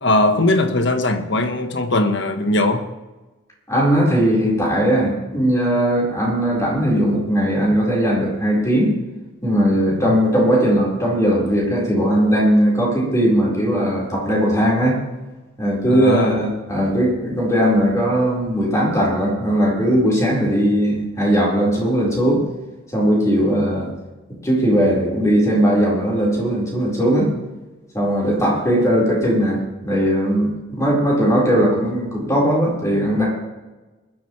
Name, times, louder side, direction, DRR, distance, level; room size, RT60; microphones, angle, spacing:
voice 1, 0.0-2.9 9.9-10.1 15.9-16.4, left 2 dB, 55° left, 7 dB, 1.3 m, -19 dB
voice 2, 3.7-8.9 9.4-15.0 15.6-22.4 22.9-23.9 24.4-27.3 27.9-33.3, equal, 15° left, -4 dB, 4.5 m, -18 dB
20.5 x 12.0 x 3.3 m, 1.1 s
head